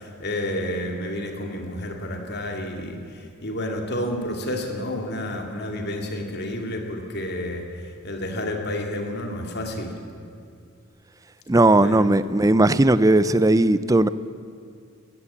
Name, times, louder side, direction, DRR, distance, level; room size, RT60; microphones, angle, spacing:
voice 1, 0.0-10.0 11.8-12.1, left 1 dB, 50° left, 2 dB, 2.6 m, -30 dB
voice 2, 11.5-14.1, right 2 dB, 15° right, 15 dB, 0.4 m, -17 dB
21.0 x 15.0 x 8.6 m, 2.4 s
head